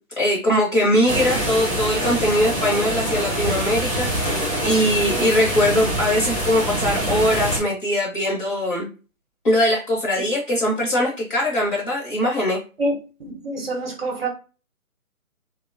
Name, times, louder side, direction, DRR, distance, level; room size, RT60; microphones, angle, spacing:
voice 1, 0.2-8.9 9.4-12.6, left 1 dB, 35° left, 0.7 m, -21 dB
sound 1, 1.1-7.6, right 1 dB, 5° right, 0.6 m, -25 dB
voice 2, 13.3-14.3, right 2 dB, 45° right, 0.7 m, -26 dB
2.8 x 2.1 x 2.4 m
figure-of-eight pair, 150°, 44 cm